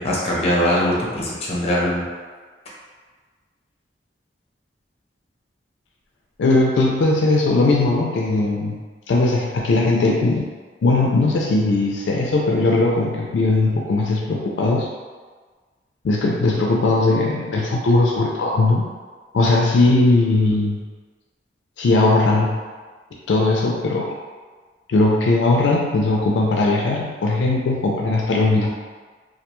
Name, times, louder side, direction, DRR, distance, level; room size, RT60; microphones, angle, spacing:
voice 1, 0.0-2.0, equal, 35° left, -4 dB, 0.6 m, -21 dB
voice 2, 6.4-8.8 9.1-10.5 10.8-14.9 16.0-18.8 19.3-20.8 21.8-22.6 23.3-24.1 24.9-28.7, left 2 dB, 80° left, -2 dB, 0.4 m, -19 dB
2.3 x 2.2 x 2.9 m, 1.4 s
head